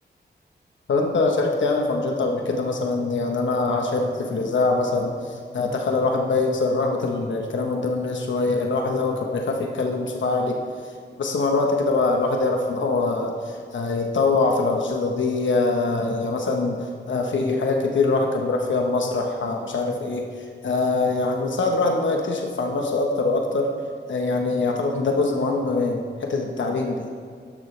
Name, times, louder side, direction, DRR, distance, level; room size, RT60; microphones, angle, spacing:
voice 1, 0.9-10.6 11.2-16.8 17.1-20.3 20.6-23.7 24.1-27.1, left 3 dB, 85° left, 1 dB, 1.1 m, -23 dB
12.5 x 11.5 x 3.3 m, 2.1 s
wide cardioid pair, 150°, 19 cm